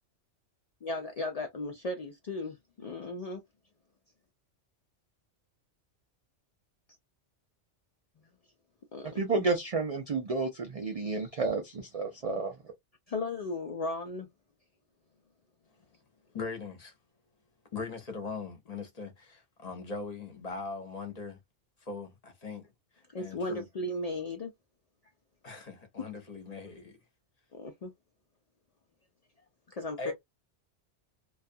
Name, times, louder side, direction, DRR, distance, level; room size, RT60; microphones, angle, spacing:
voice 1, 0.8-3.4 8.9-9.4 13.1-14.3 23.1-24.5 27.5-27.9 29.7-30.1, left 2 dB, 75° left, 0.3 m, -36 dB
voice 2, 9.2-12.5, right 3 dB, 60° right, 0.4 m, -31 dB
voice 3, 16.3-16.9 17.7-21.4 21.8-22.7 23.2-23.7 25.4-27.0 30.0-30.1, left 4 dB, 40° left, 0.7 m, -40 dB
2.4 x 2.3 x 2.6 m
omnidirectional pair, 1.2 m